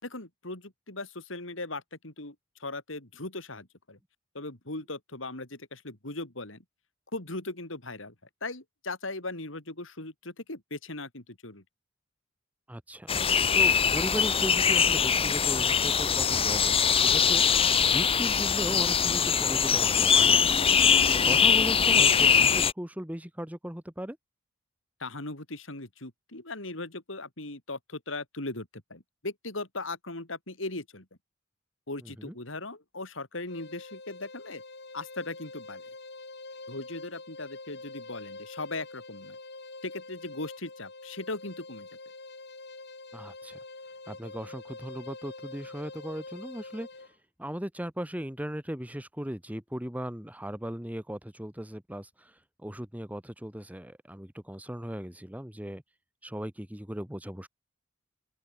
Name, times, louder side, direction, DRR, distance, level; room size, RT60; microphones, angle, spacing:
voice 1, 0.0-2.3 2.6-4.0 4.3-6.6 7.1-8.1 8.4-11.6 25.0-31.1 31.9-34.6 34.9-35.8 36.7-39.4 39.8-41.9, left 2 dB, 75° left, 4.4 m, -38 dB
voice 2, 12.7-13.1 13.5-20.6 21.1-24.2 32.0-32.3 43.1-43.6 44.1-46.9 47.4-55.8 56.2-57.5, equal, 10° right, 1.4 m, -37 dB
sound 1, 13.1-22.7, left 7 dB, 30° left, 1.0 m, -22 dB
sound 2, 33.5-47.1, left 3 dB, 55° left, 4.8 m, -45 dB
open air
head